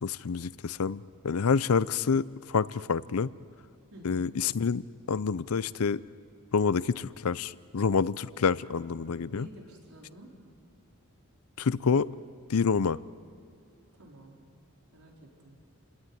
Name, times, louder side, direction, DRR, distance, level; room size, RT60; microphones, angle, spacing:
voice 1, 0.0-3.3 4.0-6.0 6.5-9.5 11.6-12.1 12.5-13.0, left 5 dB, 80° left, 18 dB, 0.6 m, -27 dB
voice 2, 3.9-4.3 9.3-10.3 13.9-14.4 14.9-15.5, right 1 dB, 80° right, -1 dB, 4.3 m, -50 dB
29.0 x 18.0 x 9.8 m, 2.5 s
head